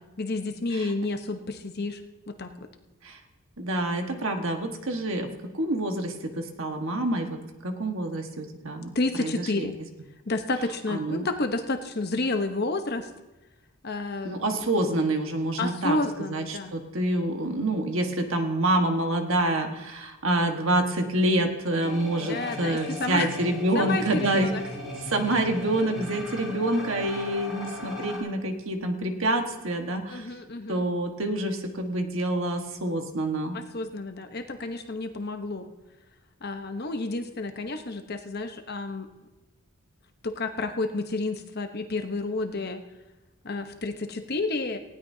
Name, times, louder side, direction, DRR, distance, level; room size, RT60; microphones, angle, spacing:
voice 1, 0.2-2.0 2.3-2.5 8.9-9.7 10.3-13.1 13.8-14.4 15.6-16.7 22.2-23.3 23.7-24.6 26.5-26.6 30.1-30.8 33.5-35.7 36.4-39.1 40.2-42.8 43.4-44.8, left 2 dB, 45° left, 7 dB, 0.9 m, -30 dB
voice 2, 3.6-8.9 9.2-9.7 10.9-11.3 14.2-16.0 16.3-24.5 25.0-30.3 30.7-33.6, right 1 dB, 60° right, 4 dB, 1.4 m, -27 dB
sound 1, 21.8-28.2, left 1 dB, ahead, 4.4 m, -37 dB
18.5 x 16.0 x 2.8 m, 1.1 s
head